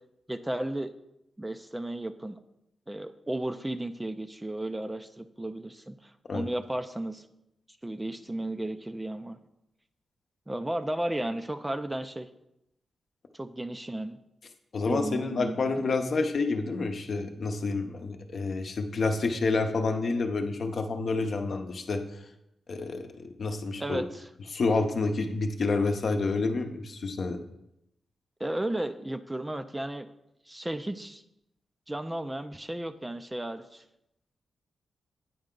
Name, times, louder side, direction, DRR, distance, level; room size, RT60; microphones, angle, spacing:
voice 1, 0.3-0.9 1.4-2.4 2.9-7.2 7.8-9.4 10.5-12.3 13.3-14.2 14.9-15.9 23.8-24.3 28.4-30.1 30.5-31.2 31.9-33.8, right 1 dB, 15° right, 10 dB, 0.4 m, -34 dB
voice 2, 14.7-22.0 22.7-24.0 24.5-27.4, left 3 dB, 60° left, 5 dB, 0.7 m, -29 dB
9.2 x 4.3 x 3.8 m, 0.84 s
cardioid pair, 80°, 0 cm